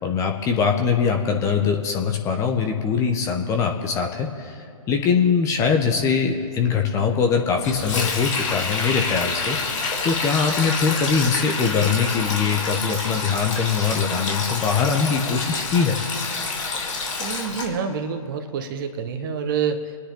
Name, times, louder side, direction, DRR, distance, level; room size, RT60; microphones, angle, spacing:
voice 1, 0.0-16.0, left 6 dB, 15° left, 3 dB, 1.2 m, -22 dB
Sink (filling or washing), 7.6-17.7, left 4 dB, 55° left, 3.5 m, -27 dB
voice 2, 17.2-20.0, right 6 dB, 35° right, 8 dB, 1.3 m, -27 dB
29.0 x 9.9 x 3.9 m, 2.4 s
figure-of-eight pair, 135°, 18 cm